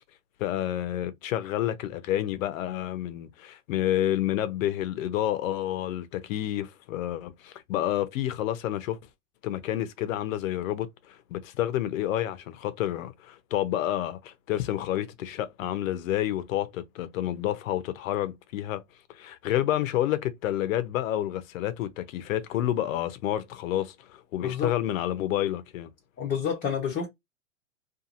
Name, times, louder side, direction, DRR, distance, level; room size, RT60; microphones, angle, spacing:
voice 1, 0.4-9.0 9.4-18.8 19.1-25.9, left 12 dB, 60° left, 0.7 m, -29 dB
voice 2, 26.2-27.1, left 7 dB, 20° left, 0.7 m, -28 dB
2.8 x 2.5 x 2.4 m
hypercardioid pair, 120°, 45 cm